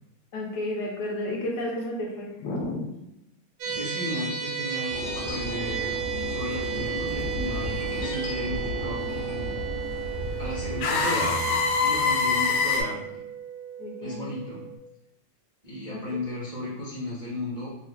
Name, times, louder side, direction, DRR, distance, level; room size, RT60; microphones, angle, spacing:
voice 1, 0.3-2.9 3.7-3.8 13.8-14.3 15.9-16.2, left 1 dB, 70° left, -1 dB, 1.2 m, -32 dB
sound 1, 3.6-14.8, right 7 dB, 90° right, 1.4 m, -34 dB
voice 2, 3.8-6.0 6.3-9.6 10.4-13.0 14.0-14.6 15.6-17.7, left 1 dB, 70° right, -8 dB, 0.4 m, -34 dB
sound 2, 4.9-12.8, left 4 dB, 90° left, 1.4 m, -28 dB
3.2 x 2.4 x 3.3 m, 0.86 s
omnidirectional pair, 2.1 m